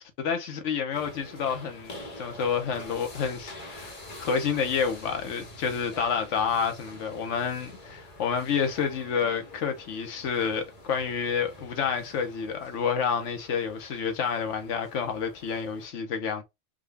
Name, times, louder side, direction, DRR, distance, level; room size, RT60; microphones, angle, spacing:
voice 1, 0.2-16.4, left 6 dB, 80° left, 1.1 m, -29 dB
sound 1, 0.9-15.9, left 1 dB, 35° left, 1.0 m, -46 dB
3.7 x 2.3 x 3.3 m
omnidirectional pair, 1.2 m